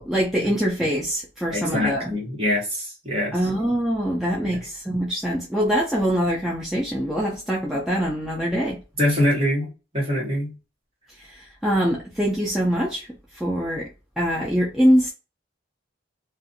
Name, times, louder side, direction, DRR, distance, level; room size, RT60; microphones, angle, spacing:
voice 1, 0.0-2.1 3.3-8.8 11.6-13.1 13.4-13.9 14.2-15.1, equal, ahead, 0.4 m, -23 dB
voice 2, 1.5-3.4 4.4-4.6 9.0-9.7 9.9-10.5, left 1 dB, 30° right, 1.3 m, -24 dB
2.5 x 2.4 x 2.6 m
head